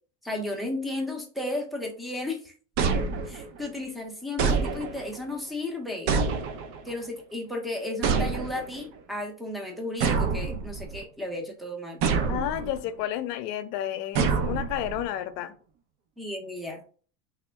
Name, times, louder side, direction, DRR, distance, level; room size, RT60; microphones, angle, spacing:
voice 1, 0.2-2.5 3.3-6.1 6.8-12.0 16.2-16.8, left 2 dB, ahead, 0.7 m, -34 dB
sound 1, 2.8-3.7 4.4-5.2 6.1-6.9 8.0-8.8 10.0-11.0 12.0-12.8 14.2-15.1, right 5 dB, 50° right, 0.7 m, -27 dB
voice 2, 12.3-15.6, left 12 dB, 70° left, 0.6 m, -31 dB
3.5 x 2.1 x 3.4 m
supercardioid pair, 110°, 50 cm